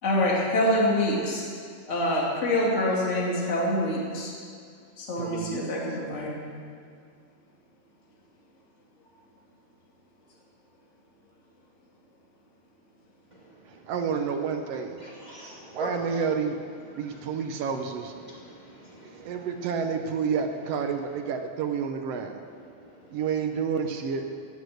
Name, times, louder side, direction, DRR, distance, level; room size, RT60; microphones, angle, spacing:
voice 1, 0.0-1.4 1.9-4.3 5.0-6.4, left 1 dB, 25° left, -3 dB, 2.3 m, -25 dB
voice 2, 5.2-5.7 13.7-15.0 15.7-16.6 17.0-18.1 19.0-22.4 23.1-24.3, right 6 dB, 70° right, 6 dB, 1.6 m, -29 dB
voice 3, 15.0-16.2 16.9-17.5 18.2-19.4 22.8-23.2, equal, 15° right, -6 dB, 2.3 m, -42 dB
14.5 x 9.0 x 6.5 m, 2.2 s
omnidirectional pair, 3.5 m